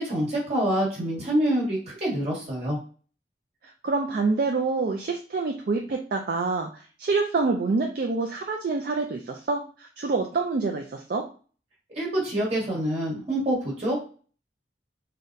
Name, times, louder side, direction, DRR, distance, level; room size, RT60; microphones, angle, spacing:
voice 1, 0.0-2.8 11.9-14.0, right 1 dB, 35° right, -5 dB, 1.5 m, -26 dB
voice 2, 3.8-11.3, right 3 dB, 55° right, 2 dB, 0.4 m, -27 dB
3.9 x 2.2 x 2.6 m, 0.38 s
head